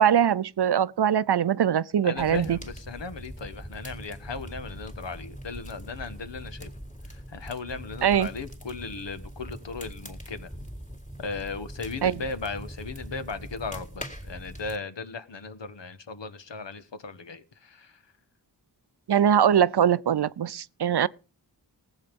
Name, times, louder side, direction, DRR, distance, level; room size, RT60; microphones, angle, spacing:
voice 1, 0.0-2.6 8.0-8.3 12.0-12.2 19.1-21.1, right 9 dB, 60° right, 0.6 m, -22 dB
voice 2, 2.0-6.7 7.1-10.5 11.2-18.0, left 4 dB, 70° left, 1.4 m, -37 dB
sound 1, 2.2-14.8, equal, 15° left, 3.3 m, -42 dB
18.5 x 8.0 x 5.3 m
wide cardioid pair, 55°, 44 cm